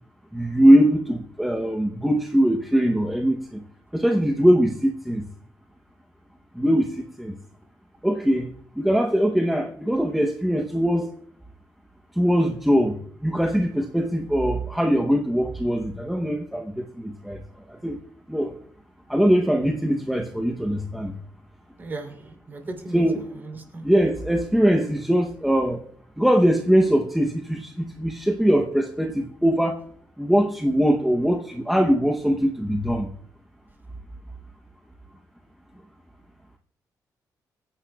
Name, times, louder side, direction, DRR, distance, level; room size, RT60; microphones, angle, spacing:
voice 1, 0.3-3.6 3.9-5.2 6.6-7.3 8.0-11.1 12.2-17.4 17.8-18.0 18.3-18.5 19.1-21.1 22.9-23.3 23.8-25.8 26.2-29.8 30.2-33.1, equal, ahead, 2 dB, 0.8 m, -21 dB
voice 2, 21.8-23.8, right 3 dB, 30° right, 3 dB, 3.0 m, -37 dB
24.5 x 10.0 x 2.3 m, 0.63 s
wide cardioid pair, 175°, 7 cm